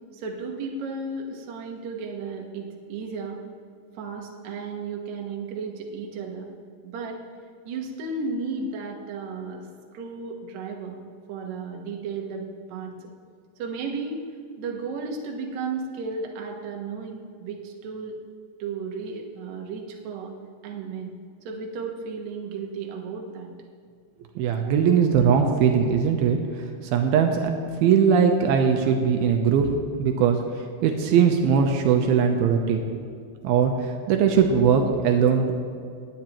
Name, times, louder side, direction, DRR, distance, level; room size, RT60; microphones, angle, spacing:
voice 1, 0.1-3.4 4.0-6.5 6.8-7.2 7.7-9.6 9.9-11.0 11.3-12.4 12.7-12.9 13.6-14.2 14.6-18.2 18.6-20.3 20.6-21.1 21.4-23.5, right 4 dB, 60° right, 1 dB, 2.1 m, -34 dB
voice 2, 24.4-26.7 26.9-27.5 27.8-29.7 30.0-30.4 30.8-32.8 33.4-35.5, right 7 dB, 80° right, 3 dB, 2.5 m, -20 dB
20.0 x 9.2 x 3.0 m, 2.3 s
omnidirectional pair, 4.4 m